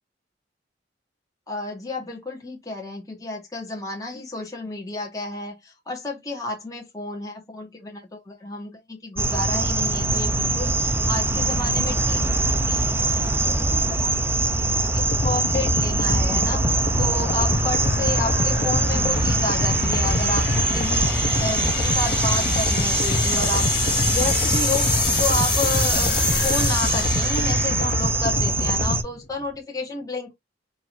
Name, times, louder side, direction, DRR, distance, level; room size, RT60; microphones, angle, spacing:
voice 1, 1.5-12.4 12.7-12.8 13.2-16.6 17.0-21.1 21.4-24.9 25.2-30.3, left 2 dB, 20° left, 1.6 m, -31 dB
sound 1, 9.2-29.0, right 3 dB, 15° right, 0.5 m, -23 dB
sound 2, 12.4-29.6, left 7 dB, 55° left, 2.0 m, -31 dB
sound 3, 15.0-29.0, left 2 dB, 40° left, 0.8 m, -26 dB
4.5 x 3.9 x 2.6 m
head